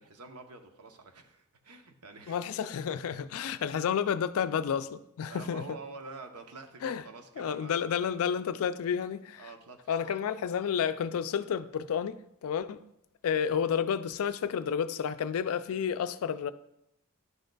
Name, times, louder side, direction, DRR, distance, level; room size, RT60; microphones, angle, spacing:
voice 1, 0.0-2.4 5.3-7.8 9.4-10.3, right 3 dB, 85° right, 0.8 m, -47 dB
voice 2, 2.3-5.7 6.8-7.0 7.4-9.5 9.9-12.8 13.2-16.5, left 7 dB, 65° left, 0.3 m, -31 dB
10.5 x 6.4 x 2.3 m
head